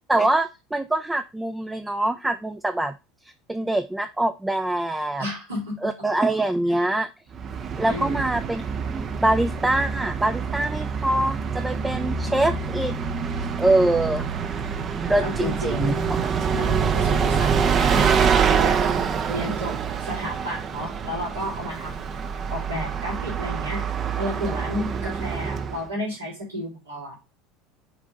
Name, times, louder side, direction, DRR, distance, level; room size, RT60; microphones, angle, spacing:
voice 1, 0.1-2.9 3.5-5.3 5.8-7.1 7.8-8.6 8.9-12.9 13.6-14.2 14.5-14.6 15.0-15.9 19.5-19.6, right 1 dB, 10° right, 8 dB, 0.5 m, -24 dB
voice 2, 5.2-5.9 7.9-8.3 13.6-13.9 15.2-16.1 16.5-18.2 18.6-22.1 22.5-23.8 24.2-27.2, equal, 90° right, -7 dB, 3.5 m, -32 dB
Bus, 7.3-25.9, right 6 dB, 40° right, 0.8 m, -26 dB
6.3 x 3.6 x 4.9 m, 0.26 s
hypercardioid pair, 75°, 0 cm